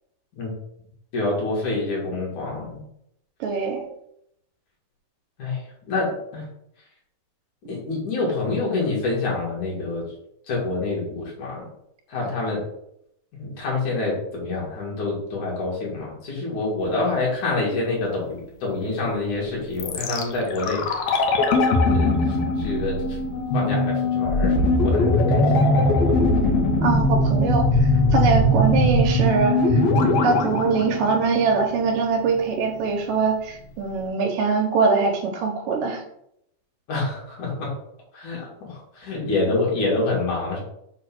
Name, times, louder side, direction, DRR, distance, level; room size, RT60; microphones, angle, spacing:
voice 1, 1.1-2.8 5.4-6.4 7.6-10.1 10.5-11.7 12.1-12.6 13.3-20.8 21.8-23.2 23.5-25.8 36.9-37.7 38.1-40.6, left 3 dB, 55° left, -4 dB, 3.2 m, -27 dB
voice 2, 3.4-3.8 26.8-29.8 30.2-36.0, right 4 dB, 75° right, 3 dB, 2.3 m, -22 dB
sound 1, 19.8-31.8 32.0-32.1, left 2 dB, 75° left, 1.6 m, -20 dB
6.6 x 3.0 x 5.8 m, 0.75 s
omnidirectional pair, 4.2 m